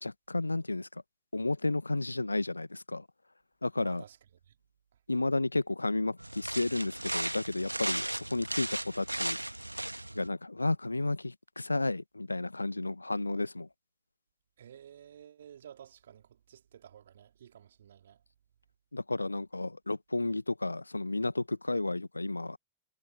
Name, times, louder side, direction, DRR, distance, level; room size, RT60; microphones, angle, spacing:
voice 1, 0.0-1.0 1.3-3.1 3.6-4.0 5.1-9.4 10.1-13.7 18.9-22.6, left 2 dB, 85° left, 0.8 m, -32 dB
voice 2, 3.8-4.2 14.6-18.2, right 9 dB, 65° right, 3.6 m, -53 dB
sound 1, 6.2-10.3, right 1 dB, 85° right, 1.3 m, -36 dB
figure-of-eight pair, 90°, 0 cm